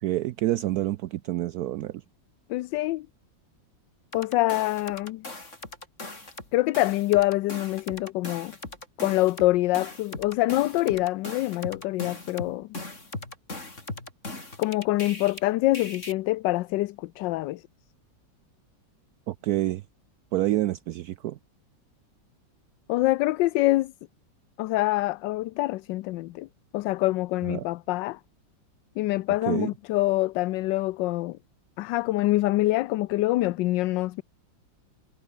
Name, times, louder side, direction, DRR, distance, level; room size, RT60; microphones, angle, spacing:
voice 1, 0.0-1.9 19.3-19.8 20.3-21.4 27.5-27.6 29.5-29.7, right 15 dB, 75° right, 0.9 m, -27 dB
voice 2, 2.5-3.1 4.1-5.2 6.5-8.5 9.0-12.7 14.6-17.6 22.9-23.9 24.6-26.5 26.7-28.2 29.0-31.4 31.8-34.2, left 17 dB, 75° left, 1.2 m, -25 dB
sound 1, 4.1-6.5 6.7-15.4 15.7-16.1, left 2 dB, 35° left, 4.7 m, -39 dB
omnidirectional pair, 2.1 m